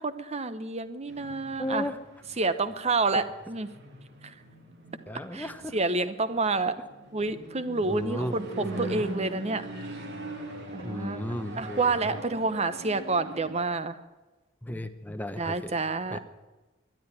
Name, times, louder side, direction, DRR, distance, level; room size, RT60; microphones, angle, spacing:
voice 1, 0.0-1.9 2.4-3.7 4.2-4.3 5.3-6.7 7.1-9.7 10.7-11.2 11.6-14.0 15.4-16.2, right 3 dB, 30° right, 12 dB, 0.9 m, -29 dB
sound 1, 1.1-13.6, right 1 dB, 55° right, 2.3 m, -42 dB
voice 2, 1.6-2.0 3.1-3.2 5.1-5.8 7.9-8.3 8.6-9.0 10.8-12.1 14.6-15.8 16.1-16.2, left 1 dB, 10° left, 8 dB, 0.9 m, -35 dB
12.5 x 10.5 x 9.9 m, 1.2 s
head